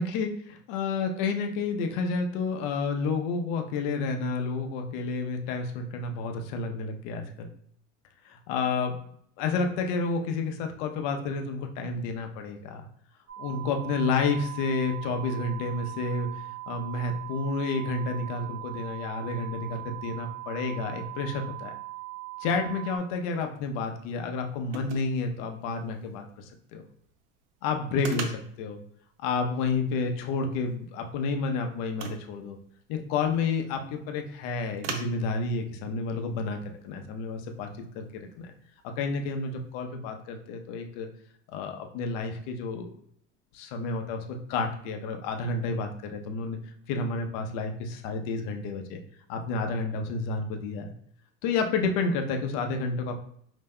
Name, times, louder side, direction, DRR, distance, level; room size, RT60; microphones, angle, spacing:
voice 1, 0.7-7.5 8.3-9.0 9.4-12.9 13.4-21.8 22.4-26.8 27.6-28.8 29.2-32.6 32.9-36.6 36.8-37.7 37.9-38.0 38.4-38.5 38.8-41.1 41.5-42.9 43.5-46.6 46.9-49.0 49.3-50.9 51.4-53.2, left 4 dB, 65° left, 4 dB, 0.8 m, -30 dB
sound 1, 13.3-23.0, right 19 dB, 55° right, 1.2 m, -40 dB
sound 2, 22.7-39.8, right 5 dB, 75° right, 0.8 m, -47 dB
5.3 x 2.9 x 2.2 m, 0.65 s
supercardioid pair, 105°, 39 cm